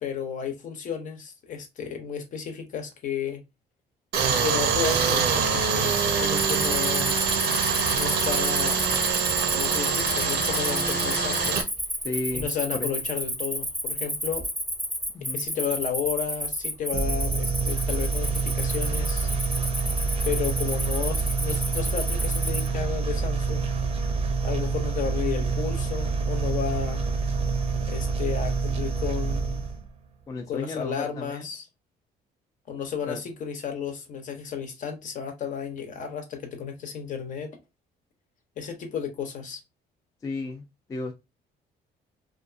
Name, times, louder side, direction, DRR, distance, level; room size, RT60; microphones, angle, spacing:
voice 1, 0.0-3.4 4.4-7.2 7.9-8.8 9.5-11.6 12.3-14.4 15.3-19.3 20.2-23.6 24.4-27.1 27.9-29.6 30.5-31.7 32.7-37.5 38.6-39.6, left 7 dB, 50° left, 0.7 m, -32 dB
Tools, 4.1-11.6, right 6 dB, 85° right, 0.6 m, -24 dB
Cricket, 6.3-22.7, equal, ahead, 0.7 m, -31 dB
voice 2, 12.0-12.9 15.1-15.4 30.3-31.5 33.1-33.2 40.2-40.6 40.9-41.1, left 3 dB, 20° left, 0.3 m, -33 dB
sound 1, 16.9-29.9, right 4 dB, 35° right, 0.5 m, -27 dB
2.5 x 2.3 x 2.4 m
cardioid pair, 110°, 17 cm